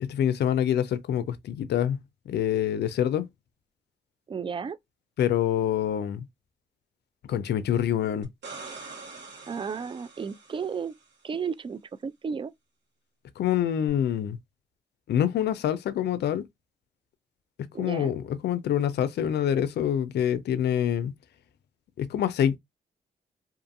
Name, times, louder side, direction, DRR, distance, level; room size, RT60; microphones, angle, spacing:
voice 1, 0.0-2.0 2.3-3.3 5.2-6.2 7.3-8.3 13.4-14.4 15.1-16.4 17.6-21.1 22.0-22.6, left 10 dB, 65° left, 0.4 m, -26 dB
voice 2, 4.3-4.8 9.5-10.9 11.2-12.5 17.7-18.1, right 6 dB, 30° right, 0.3 m, -33 dB
sound 1, 8.2-11.0 13.9-14.0, right 4 dB, 70° right, 1.2 m, -44 dB
2.6 x 2.5 x 2.5 m
supercardioid pair, 50°, 18 cm